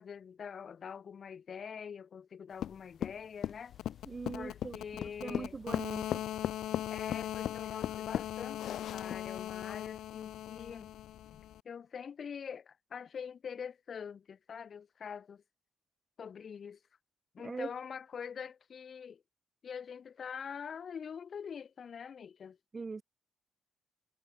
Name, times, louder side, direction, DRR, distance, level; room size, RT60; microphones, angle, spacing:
voice 1, 0.0-3.7 4.3-5.6 6.9-10.9 11.6-15.4 16.2-16.8 17.3-19.2 19.6-22.6, left 7 dB, 45° left, 0.9 m, -44 dB
sound 1, 2.6-9.4, left 10 dB, 65° left, 0.5 m, -37 dB
sound 2, 3.3-8.8, equal, 5° left, 3.6 m, -71 dB
sound 3, 3.7-11.6, left 13 dB, 80° left, 0.9 m, -41 dB
voice 2, 4.1-4.8 5.0-6.2 17.4-17.7 22.7-23.0, right 4 dB, 25° right, 0.3 m, -41 dB
cardioid pair, 130°, 0 cm